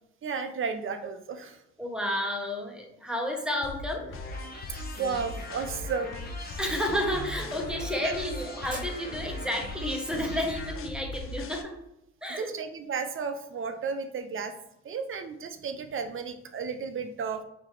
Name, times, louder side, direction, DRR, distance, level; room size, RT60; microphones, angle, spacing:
voice 1, 0.2-1.6 4.7-6.2 8.0-8.1 12.4-14.5 14.8-17.4, right 5 dB, 45° right, 8 dB, 0.6 m, -33 dB
voice 2, 1.8-4.1 6.6-11.7 12.2-12.5, equal, 5° right, 1 dB, 1.0 m, -31 dB
sound 1, 3.4-12.2, right 2 dB, 30° right, 1.3 m, -53 dB
sound 2, 3.6-11.6, left 3 dB, 45° left, 0.6 m, -39 dB
sound 3, 3.9-10.7, left 1 dB, 30° left, 1.1 m, -42 dB
5.4 x 2.9 x 3.3 m, 0.85 s
cardioid pair, 90°, 30 cm